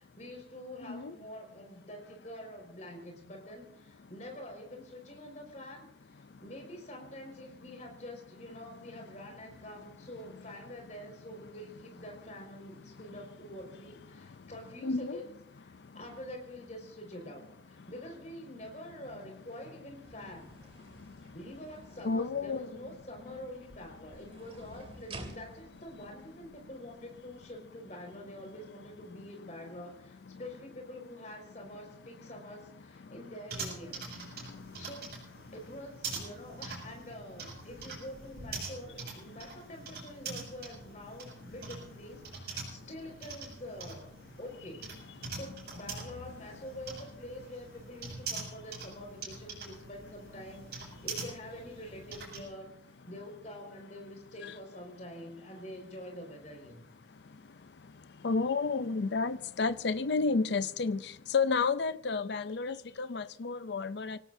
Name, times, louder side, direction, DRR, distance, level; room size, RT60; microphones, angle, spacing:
voice 1, 0.0-20.5 21.3-34.4 34.8-35.1 35.5-44.1 44.4-52.7 53.0-56.8, left 1 dB, 40° left, 5.1 m, -46 dB
voice 2, 14.8-15.2 22.0-22.7 54.4-54.5 58.2-64.2, left 4 dB, 70° left, 0.5 m, -31 dB
sound 1, 20.0-27.5, right 2 dB, 30° right, 2.4 m, -52 dB
sound 2, 33.5-52.4, right 4 dB, 55° right, 7.0 m, -44 dB
25.5 x 18.0 x 2.7 m
head